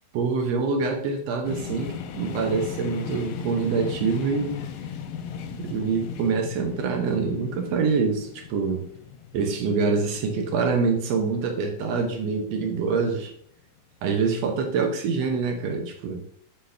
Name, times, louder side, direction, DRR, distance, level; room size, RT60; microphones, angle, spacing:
voice 1, 0.1-4.6 5.6-8.8 9.3-13.3 14.0-16.2, right 4 dB, 70° right, 3 dB, 1.6 m, -25 dB
sound 1, 1.4-13.2, left 7 dB, 80° left, 2.3 m, -38 dB
7.8 x 4.0 x 3.4 m, 0.63 s
omnidirectional pair, 4.0 m